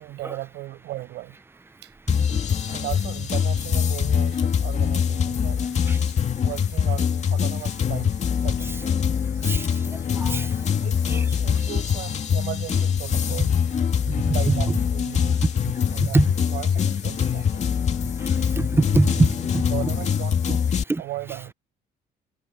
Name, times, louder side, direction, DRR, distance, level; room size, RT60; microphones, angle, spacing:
voice 1, 0.0-1.9 2.5-5.8 6.4-8.1 8.4-9.5 10.7-13.6 14.3-15.5 15.8-17.7 19.7-20.7 21.0-21.5, right 16 dB, 80° right, 7.8 m, -37 dB
sound 1, 2.1-20.8, left 7 dB, 40° left, 2.4 m, -23 dB
voice 2, 18.6-19.3 19.5-19.6 20.9-21.0, right 3 dB, 15° right, 0.7 m, -21 dB
cardioid pair, 110°, 17 cm